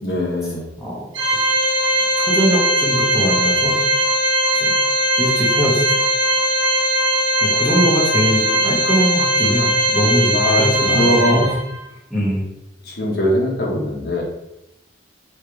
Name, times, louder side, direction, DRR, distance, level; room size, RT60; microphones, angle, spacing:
voice 1, 0.0-0.7 10.3-11.6 12.8-14.2, equal, 60° left, -3 dB, 1.2 m, -21 dB
Organ, 1.2-11.8, right 1 dB, 85° right, 0.9 m, -19 dB
voice 2, 2.2-3.8 4.6-4.7 5.2-6.0 7.4-11.5 12.1-12.5, equal, ahead, -7 dB, 1.3 m, -21 dB
3.5 x 3.3 x 4.6 m, 0.87 s
head